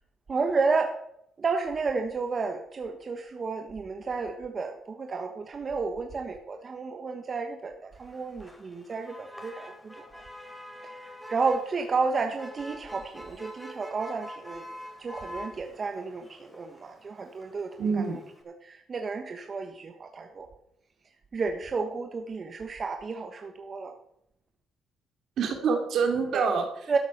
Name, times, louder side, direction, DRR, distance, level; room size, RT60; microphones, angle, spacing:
voice 1, 0.3-1.0 1.4-10.2 10.8-14.6 15.0-18.2 18.6-20.5 21.3-23.9 26.3-26.5 26.9-27.0, right 4 dB, 40° right, 5 dB, 1.4 m, -32 dB
Motor vehicle (road), 7.9-18.4, equal, 5° left, 3.7 m, -46 dB
voice 2, 17.8-18.2 25.4-27.0, right 5 dB, 70° right, 4 dB, 3.0 m, -26 dB
13.5 x 7.9 x 6.7 m, 0.75 s
cardioid pair, 90°, 0 cm